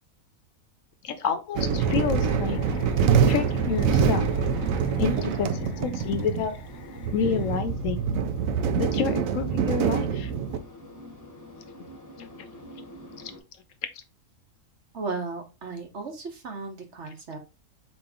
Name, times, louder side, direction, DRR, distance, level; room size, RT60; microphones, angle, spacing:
voice 1, 1.0-2.6 3.3-4.2 5.0-6.5 7.1-8.0 8.7-10.3 12.2-12.3, left 7 dB, 70° left, 10 dB, 0.9 m, -29 dB
sound 1, 1.6-10.6, right 6 dB, 75° right, 1.0 m, -25 dB
sound 2, 1.8-7.6, left 6 dB, 90° left, 1.1 m, -44 dB
sound 3, 6.6-13.4, equal, 15° left, 0.9 m, -46 dB
voice 2, 14.9-17.4, right 4 dB, 55° right, 4 dB, 1.2 m, -35 dB
4.4 x 3.1 x 3.5 m, 0.27 s
omnidirectional pair, 1.5 m